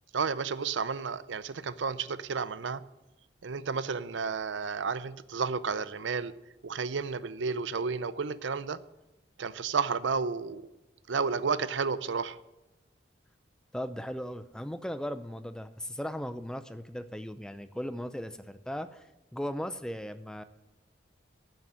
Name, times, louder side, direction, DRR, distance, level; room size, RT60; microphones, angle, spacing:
voice 1, 0.1-2.8 3.4-6.3 6.6-8.8 9.4-10.6 11.1-12.4, right 5 dB, 90° right, 0.6 m, -32 dB
voice 2, 13.7-19.0 19.3-20.4, equal, 5° left, 0.5 m, -37 dB
9.6 x 7.9 x 7.5 m
head